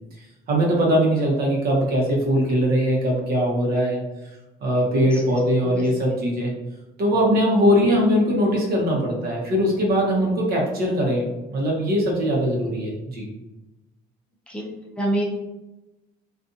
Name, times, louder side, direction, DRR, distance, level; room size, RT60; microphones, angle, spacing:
voice 1, 0.5-4.0 4.6-6.5 7.0-11.2 11.5-13.2, equal, 65° right, -2 dB, 0.9 m, -21 dB
voice 2, 5.1-5.3 5.6-5.9 14.5-14.7 15.0-15.2, right 1 dB, 5° left, -4 dB, 0.5 m, -27 dB
2.6 x 2.4 x 2.5 m, 1.0 s
cardioid pair, 110°, 17 cm